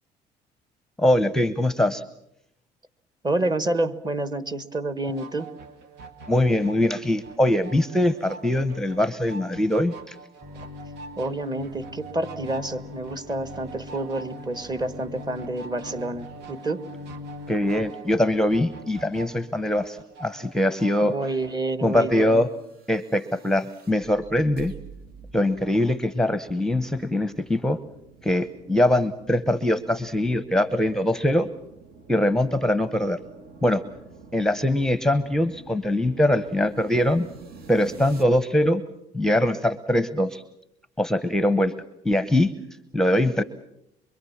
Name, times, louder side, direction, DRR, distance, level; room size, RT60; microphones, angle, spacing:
voice 1, 1.0-2.0 6.3-10.2 17.5-21.2 21.8-22.5 22.9-24.7 25.3-27.8 28.2-31.5 32.1-33.2 33.6-33.8 34.3-37.3 37.7-38.8 39.1-40.4 41.0-41.7 42.0-42.5 42.9-43.4, left 1 dB, 5° left, 12 dB, 0.9 m, -22 dB
voice 2, 3.2-5.5 11.2-16.8 21.0-22.5, right 2 dB, 25° right, 14 dB, 1.5 m, -28 dB
sound 1, 5.0-21.6, right 4 dB, 80° right, 1.9 m, -45 dB
Bowed string instrument, 10.4-17.9, left 2 dB, 45° right, 4.9 m, -42 dB
sound 2, 22.5-38.2, right 5 dB, 65° right, 2.5 m, -48 dB
25.0 x 23.5 x 7.2 m, 0.78 s
cardioid pair, 120°, 17 cm